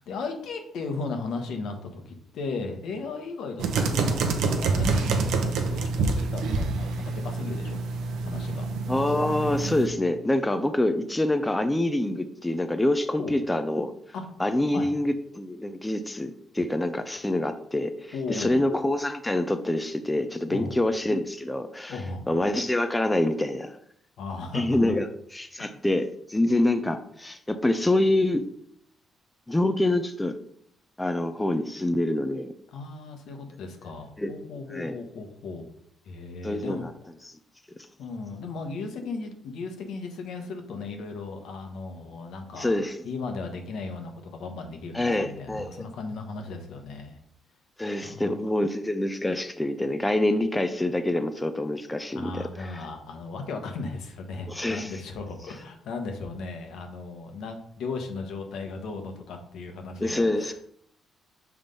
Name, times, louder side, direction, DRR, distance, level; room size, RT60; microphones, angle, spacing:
voice 1, 0.0-7.8 8.2-8.7 13.2-13.4 14.1-14.2 14.7-14.9 18.1-18.6 20.5-20.7 21.9-22.3 24.2-25.0 32.7-35.7 36.0-36.9 38.0-42.8 43.0-47.2 48.0-48.3 52.1-60.5, left 4 dB, 75° left, 5 dB, 1.1 m, -36 dB
sound 1, 3.6-9.9, right 4 dB, 85° right, 0.8 m, -27 dB
voice 2, 8.9-13.9 14.4-22.0 22.3-23.8 24.5-28.4 29.5-30.4 31.0-32.5 34.2-34.3 34.7-35.0 36.4-36.9 42.5-43.0 44.9-45.9 47.8-52.8 54.5-54.9 60.0-60.5, left 1 dB, 10° left, 9 dB, 0.5 m, -26 dB
5.8 x 3.5 x 5.2 m, 0.68 s
cardioid pair, 90°, 0 cm